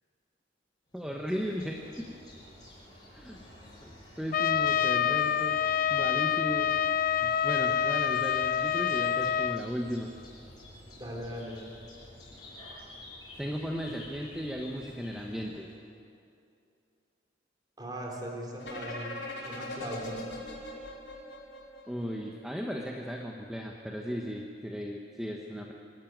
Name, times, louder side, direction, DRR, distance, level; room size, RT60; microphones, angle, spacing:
sound 1, 0.9-15.8, left 1 dB, 20° left, 6.6 m, -51 dB
voice 1, 0.9-2.1 3.1-3.4 3.8-3.9 4.2-5.6 5.9-6.7 7.2-10.1 13.4-15.7 21.9-25.7, equal, 5° right, 0 dB, 1.2 m, -36 dB
Trumpet, 4.3-9.6, left 8 dB, 45° left, 0.4 m, -27 dB
voice 2, 11.0-11.6 17.8-19.2 19.5-20.2, right 1 dB, 20° right, -1 dB, 3.8 m, -39 dB
sound 2, 18.6-22.5, left 1 dB, 70° left, 5.6 m, -40 dB
25.5 x 13.0 x 9.3 m, 2.5 s
head